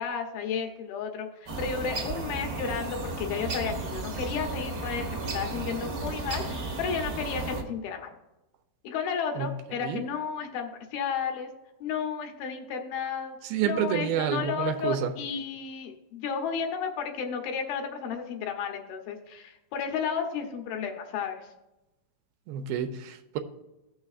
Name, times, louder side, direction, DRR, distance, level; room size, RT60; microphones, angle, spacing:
voice 1, 0.0-8.1 8.8-11.5 11.8-13.4 13.6-21.5, left 6 dB, 80° left, 3 dB, 2.8 m, -33 dB
sound 1, 1.5-7.6, right 3 dB, 70° right, 1.0 m, -34 dB
voice 2, 13.5-15.1 22.5-23.4, right 9 dB, 85° right, 6 dB, 2.5 m, -29 dB
16.0 x 6.2 x 2.4 m, 0.97 s
omnidirectional pair, 4.3 m